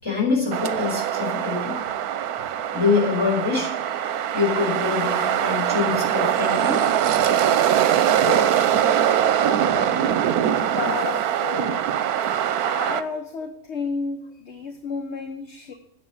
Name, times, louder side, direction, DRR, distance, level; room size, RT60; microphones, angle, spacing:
voice 1, 0.0-1.7 2.7-3.7 4.3-6.8, left 5 dB, 20° left, -3 dB, 5.0 m, -24 dB
sound 1, 0.5-13.0, right 10 dB, 80° right, 1.2 m, -22 dB
voice 2, 8.2-8.6 9.5-10.3 10.8-11.9 12.7-15.7, left 5 dB, 50° left, 6 dB, 1.2 m, -32 dB
10.5 x 7.7 x 9.3 m, 0.73 s
omnidirectional pair, 1.6 m